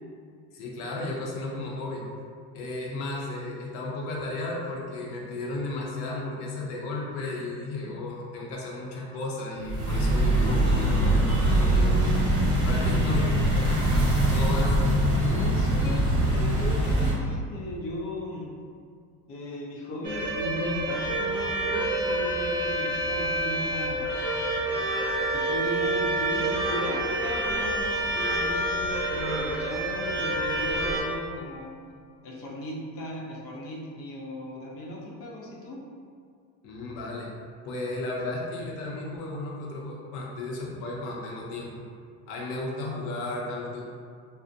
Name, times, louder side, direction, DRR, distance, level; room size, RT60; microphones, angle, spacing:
voice 1, 0.5-2.1 2.5-12.0 12.6-13.3 13.7-14.8 36.6-37.3 37.7-41.7 42.3-43.8, left 2 dB, 80° left, -2 dB, 0.6 m, -34 dB
sound 1, 9.6-17.1, right 1 dB, 60° right, 0.9 m, -23 dB
voice 2, 12.8-13.2 14.5-14.6 15.2-18.5 19.3-24.3 24.7-24.8 25.3-31.7 32.2-35.8, left 1 dB, 40° left, -2 dB, 0.4 m, -36 dB
sound 2, 20.0-31.0, right 1 dB, 35° right, 0.5 m, -28 dB
2.5 x 2.0 x 2.5 m, 2.2 s
cardioid pair, 155°, 34 cm